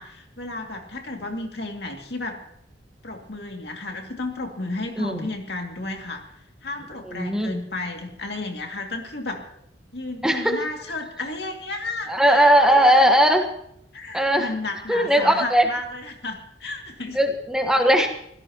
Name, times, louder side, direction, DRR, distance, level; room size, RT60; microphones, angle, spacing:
voice 1, 0.0-2.4 3.0-6.2 6.6-9.4 9.9-13.1 13.9-17.2, left 2 dB, 65° left, 2 dB, 2.4 m, -33 dB
voice 2, 5.0-5.3 7.0-7.6 10.2-10.6 12.1-13.5 14.1-14.5 14.9-15.7 17.1-18.1, equal, 5° right, 3 dB, 1.3 m, -18 dB
25.0 x 16.5 x 3.0 m, 0.74 s
head